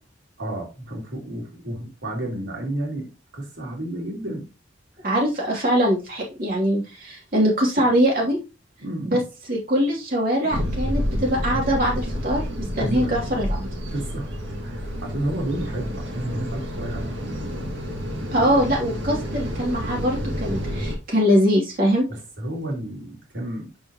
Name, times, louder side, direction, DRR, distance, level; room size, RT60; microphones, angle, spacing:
voice 1, 0.4-4.5 8.8-9.1 12.8-13.2 13.9-14.3 14.6-17.7 18.3-18.7 22.1-23.7, right 1 dB, 90° right, -1 dB, 3.0 m, -31 dB
voice 2, 5.0-8.4 9.0-13.7 18.3-22.0, equal, 50° right, -3 dB, 3.2 m, -22 dB
sound 1, 10.5-21.0, equal, 70° right, 2.2 m, -29 dB
8.8 x 6.0 x 3.0 m, 0.30 s
head